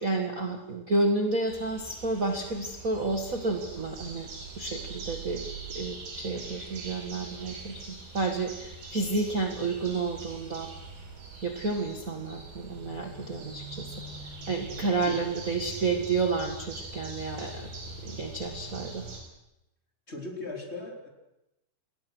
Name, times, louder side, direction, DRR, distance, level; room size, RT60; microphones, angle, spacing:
voice 1, 0.0-4.3 4.5-5.4 5.7-10.7 11.4-13.9 14.5-17.7 18.0-19.0, right 3 dB, 50° right, 3 dB, 0.9 m, -30 dB
sound 1, 1.5-19.2, right 3 dB, 75° right, 7.2 m, -42 dB
voice 2, 14.8-15.2 20.1-21.1, left 2 dB, 15° left, 2 dB, 3.3 m, -39 dB
28.5 x 21.0 x 6.4 m, 0.89 s
omnidirectional pair, 4.7 m